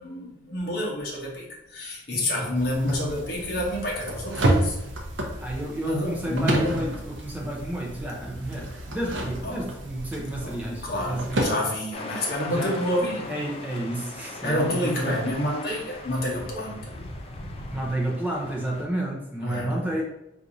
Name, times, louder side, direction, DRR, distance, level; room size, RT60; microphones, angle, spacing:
voice 1, 0.0-1.4 1.7-4.8 5.8-6.7 9.4-9.6 10.4-13.3 14.4-16.9 19.4-19.8, left 1 dB, 50° left, -2 dB, 0.9 m, -28 dB
sound 1, 2.5-11.4, right 1 dB, 70° right, 0.6 m, -30 dB
voice 2, 5.4-11.6 12.5-12.8 13.3-15.3 17.7-20.0, right 1 dB, 10° right, -2 dB, 0.6 m, -31 dB
sound 2, 11.9-18.8, left 2 dB, 30° left, 0.3 m, -39 dB
4.5 x 2.6 x 2.6 m, 0.86 s
head